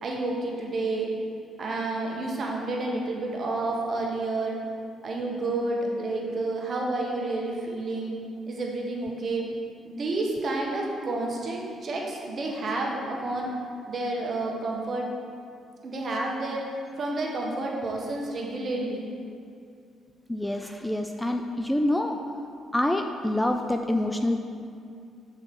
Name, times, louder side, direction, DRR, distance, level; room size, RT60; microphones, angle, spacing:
voice 1, 0.0-1.1 1.6-4.6 5.0-8.2 8.5-9.4 9.8-13.5 13.9-15.1 15.8-16.6 17.0-19.1, right 2 dB, 50° right, -1 dB, 1.1 m, -30 dB
voice 2, 20.3-22.2 22.7-24.4, left 1 dB, 5° left, 5 dB, 0.3 m, -26 dB
6.4 x 4.4 x 4.2 m, 2.4 s
cardioid pair, 90°, 0 cm